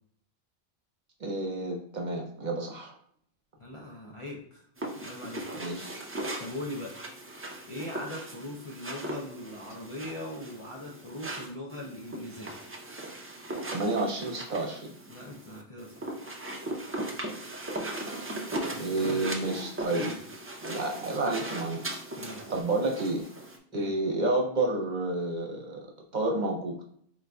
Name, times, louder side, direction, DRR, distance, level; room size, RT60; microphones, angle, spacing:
voice 1, 1.2-2.9 5.5-5.9 13.7-14.8 18.8-20.1 20.6-21.8 22.5-23.3 23.7-25.9 26.1-27.0, right 2 dB, 50° right, 1 dB, 0.8 m, -30 dB
voice 2, 3.6-4.7 5.0-5.5 6.4-7.0 7.7-12.6 15.1-16.1 17.1-17.2 18.7-19.4 20.0-20.2 22.2-22.5 23.7-23.9, left 1 dB, 40° left, -3 dB, 0.5 m, -41 dB
sound 1, 4.8-23.6, right 1 dB, 25° right, 0.3 m, -38 dB
4.5 x 3.8 x 2.3 m, 0.64 s
omnidirectional pair, 1.1 m